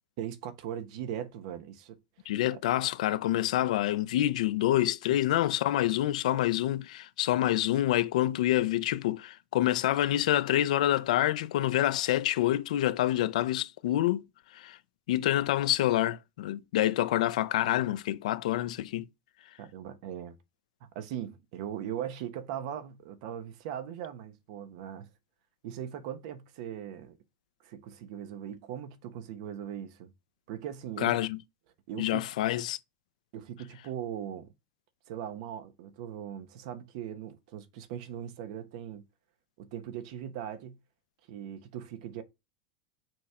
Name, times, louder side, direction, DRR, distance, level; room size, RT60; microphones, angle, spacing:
voice 1, 0.2-2.0 2.5-2.6 19.6-20.4 20.8-25.1 25.6-27.2 27.6-30.1 30.5-31.2 31.9-32.3 33.3-34.5 35.1-39.0 39.6-40.8 41.3-42.2, right 10 dB, 60° right, 1.2 m, -39 dB
voice 2, 2.3-14.2 14.5-14.8 15.1-19.0 31.0-31.4 32.0-32.8, left 13 dB, 80° left, 0.7 m, -27 dB
6.1 x 4.5 x 3.7 m
supercardioid pair, 135°, 4 cm